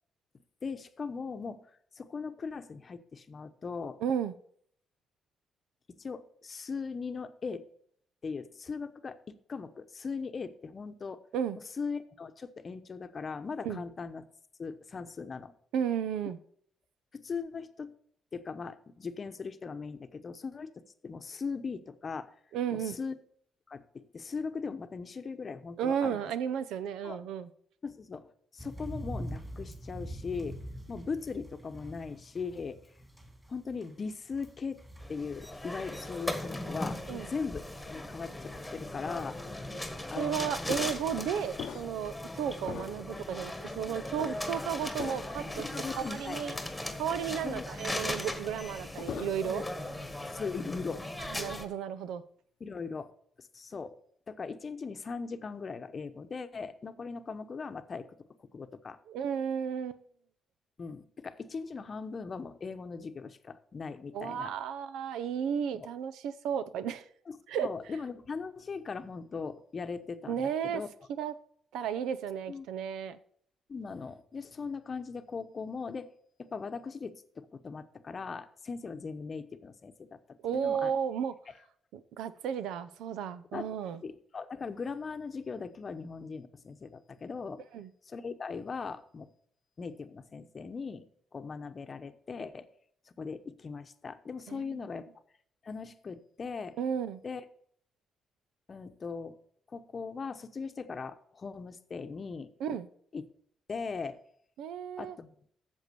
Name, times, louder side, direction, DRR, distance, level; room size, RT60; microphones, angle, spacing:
voice 1, 0.6-1.7 2.0-4.0 5.9-7.7 8.2-11.2 11.8-14.2 14.6-15.5 17.1-17.9 18.3-22.3 22.7-23.1 23.7-26.2 27.0-27.2 27.8-30.6 30.9-32.8 33.5-34.8 35.1-39.4 40.1-40.5 45.5-46.4 47.4-47.7 50.3-51.1 52.6-53.1 53.4-54.0 54.3-58.1 58.4-59.0 60.8-64.5 65.7-65.9 67.3-70.9 72.5-72.7 73.7-76.1 76.4-80.9 83.5-83.7 84.0-87.6 88.1-89.3 89.8-91.1 91.3-92.7 93.2-95.1 95.6-96.8 97.2-97.4 98.7-99.3 99.7-102.5 103.1-103.2 103.7-104.2 105.0-105.3, left 5 dB, 40° left, 0.9 m, -39 dB
voice 2, 4.0-4.3 11.3-11.6 13.6-13.8 15.7-16.4 22.5-23.0 25.8-27.5 37.1-37.3 40.2-45.7 46.0-46.5 46.9-49.6 51.3-52.2 59.1-60.0 64.1-67.0 67.5-67.7 70.3-70.8 71.2-71.3 71.7-73.2 80.4-81.3 81.9-84.0 87.7-87.9 94.5-94.8 96.8-97.2 102.6-102.9 104.6-105.2, right 8 dB, 85° right, 0.6 m, -33 dB
sound 1, 28.6-39.8 40.1-41.1, right 1 dB, 10° right, 2.8 m, -46 dB
sound 2, 35.0-51.7, left 1 dB, 5° left, 1.5 m, -38 dB
sound 3, 40.7-42.2 42.6-43.3 44.2-44.3 45.0-45.5 45.9-46.0 48.7-49.6 50.0-50.4, left 8 dB, 70° left, 0.7 m, -42 dB
8.1 x 7.2 x 6.9 m
cardioid pair, 90°, 0 cm